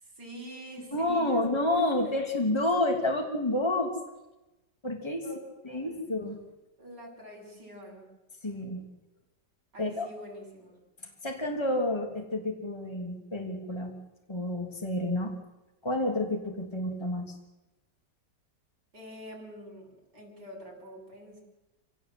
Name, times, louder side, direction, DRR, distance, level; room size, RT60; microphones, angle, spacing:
voice 1, 0.0-1.5 2.0-2.1 5.2-5.4 5.7-6.0 6.8-8.1 9.7-10.8 18.9-21.4, equal, 75° right, 2 dB, 6.7 m, -46 dB
voice 2, 0.9-3.9 4.8-5.2 5.6-6.4 8.4-8.8 9.8-10.1 11.2-14.0 14.3-15.3 15.8-17.3, left 1 dB, 15° left, 2 dB, 3.1 m, -29 dB
27.5 x 17.5 x 8.0 m, 1.0 s
omnidirectional pair, 1.9 m